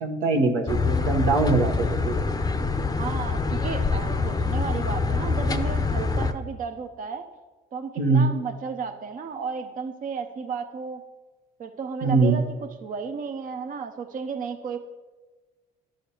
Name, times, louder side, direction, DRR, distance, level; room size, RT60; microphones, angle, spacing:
voice 1, 0.0-2.1 8.0-8.3 12.0-12.4, right 3 dB, 75° right, 2 dB, 1.0 m, -22 dB
sound 1, 0.7-6.3, left 4 dB, 20° left, 0.5 m, -25 dB
voice 2, 3.0-7.2 7.7-11.0 11.6-12.4 12.8-14.8, right 5 dB, 45° right, 5 dB, 0.6 m, -33 dB
11.5 x 6.4 x 2.8 m, 1.3 s
hypercardioid pair, 65°, 20 cm